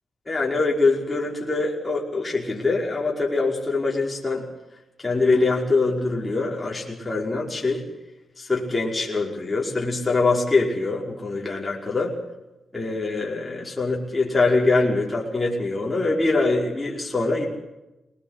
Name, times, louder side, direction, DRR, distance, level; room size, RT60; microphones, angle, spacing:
voice 1, 0.3-4.4 5.0-7.8 8.4-12.1 12.7-17.5, left 3 dB, 25° left, -2 dB, 5.4 m, -23 dB
21.0 x 19.5 x 8.2 m, 0.97 s
cardioid pair, 60°, 0 cm